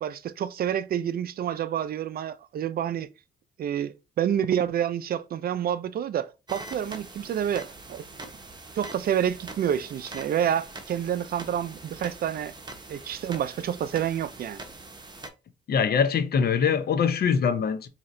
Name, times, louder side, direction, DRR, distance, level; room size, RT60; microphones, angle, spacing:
voice 1, 0.0-3.1 3.6-8.0 8.7-12.5 12.9-14.6, right 9 dB, 55° right, 0.4 m, -28 dB
sound 1, 6.5-15.3, right 2 dB, 25° right, 0.9 m, -43 dB
voice 2, 15.7-17.9, left 6 dB, 60° left, 0.6 m, -23 dB
4.2 x 2.8 x 2.6 m
cardioid pair, 80°, 19 cm